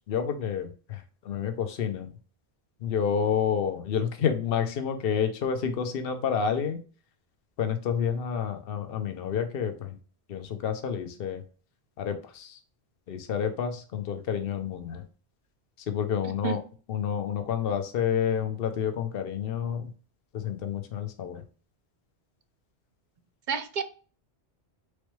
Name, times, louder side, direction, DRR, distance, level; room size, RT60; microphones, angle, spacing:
voice 1, 0.0-2.1 2.8-6.8 7.6-10.0 10.3-11.4 12.0-12.6 13.1-15.0 15.9-16.6 16.9-19.9 20.3-21.4, left 7 dB, 65° left, 0.9 m, -29 dB
voice 2, 16.2-16.6 23.5-23.8, right 7 dB, 55° right, 0.6 m, -30 dB
4.1 x 3.2 x 3.0 m
omnidirectional pair, 1.1 m